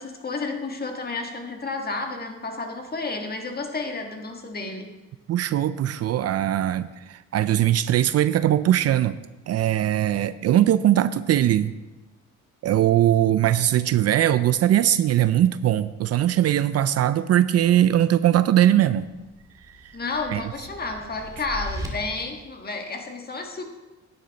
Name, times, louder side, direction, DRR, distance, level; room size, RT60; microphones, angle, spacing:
voice 1, 0.0-4.9 19.9-23.6, left 3 dB, 30° left, 4 dB, 1.6 m, -31 dB
voice 2, 5.3-9.2 9.5-11.7 12.6-19.1 20.3-20.4, right 12 dB, 55° right, 15 dB, 0.4 m, -20 dB
sound 1, 19.2-21.9, equal, 10° right, 2.1 m, -38 dB
9.9 x 9.6 x 4.0 m, 1.1 s
cardioid pair, 90°, 30 cm